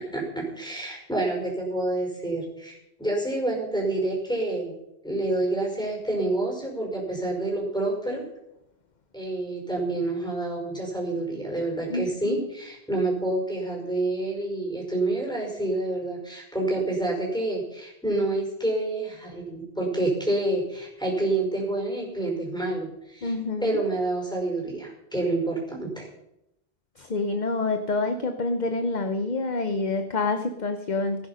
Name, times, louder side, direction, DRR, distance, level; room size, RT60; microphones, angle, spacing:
voice 1, 0.1-4.7 5.0-8.2 9.1-23.3 23.6-26.1, right 2 dB, 5° left, -2 dB, 5.1 m, -28 dB
voice 2, 11.9-12.5 23.2-23.8 27.0-31.3, left 3 dB, 45° left, 7 dB, 1.0 m, -27 dB
17.0 x 10.0 x 5.7 m, 0.85 s
omnidirectional pair, 1.1 m